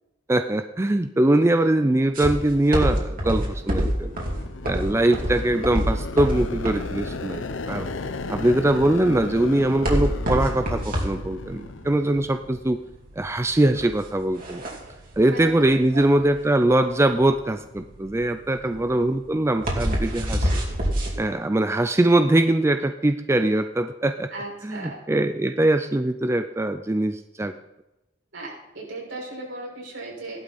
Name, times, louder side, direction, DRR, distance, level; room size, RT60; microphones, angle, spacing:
voice 1, 0.3-4.1 4.6-7.9 8.3-12.8 13.2-14.6 15.2-20.5 21.2-24.3 24.6-27.5, right 1 dB, 15° right, 9 dB, 0.4 m, -22 dB
sound 1, 2.1-21.1, equal, 50° right, 3.1 m, -27 dB
sound 2, 3.1-12.9, left 3 dB, 75° left, 0.7 m, -35 dB
voice 2, 15.3-15.6 18.6-18.9 24.3-25.0 28.3-30.4, right 2 dB, 75° right, -3 dB, 5.9 m, -37 dB
15.5 x 11.5 x 4.2 m, 0.97 s
head